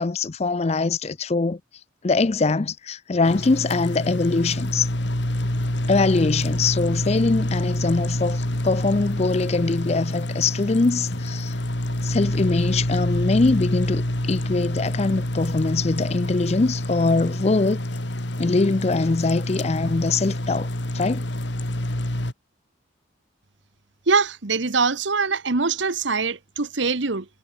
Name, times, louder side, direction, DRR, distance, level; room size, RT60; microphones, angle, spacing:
voice 1, 0.0-1.6 2.0-4.9 5.9-11.6 12.0-17.8 18.4-20.7 20.9-21.3, left 3 dB, 35° left, 0.5 m, -22 dB
sound 1, 3.2-22.3, left 1 dB, 65° left, 2.7 m, -27 dB
voice 2, 24.1-27.2, right 4 dB, 70° right, 1.3 m, -23 dB
head